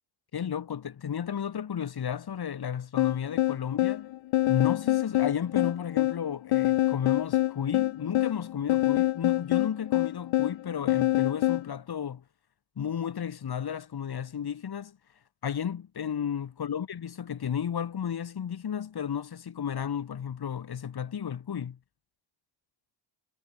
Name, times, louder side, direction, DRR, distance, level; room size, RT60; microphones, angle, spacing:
voice 1, 0.3-4.1 4.5-12.2 12.8-15.0 15.4-21.8, left 8 dB, 55° left, 5.2 m, -33 dB
sound 1, 3.0-11.7, left 16 dB, 85° left, 2.0 m, -26 dB
cardioid pair, 85°, 46 cm